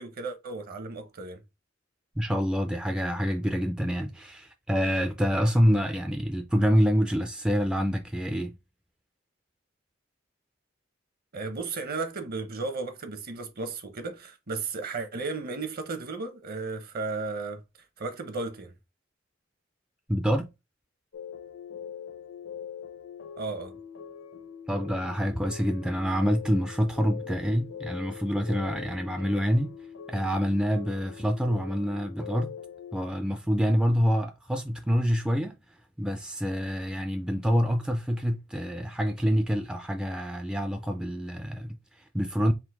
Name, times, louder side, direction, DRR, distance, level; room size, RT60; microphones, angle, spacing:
voice 1, 0.0-1.4 11.3-17.6 18.0-18.7 23.4-23.8, right 3 dB, 50° right, 0.8 m, -34 dB
voice 2, 2.2-8.6 20.1-20.5 24.7-29.7 30.1-32.5 32.9-35.6 36.0-42.5, equal, 5° right, 0.3 m, -26 dB
sound 1, 21.1-33.0, left 7 dB, 85° left, 0.9 m, -42 dB
3.8 x 2.5 x 4.6 m
head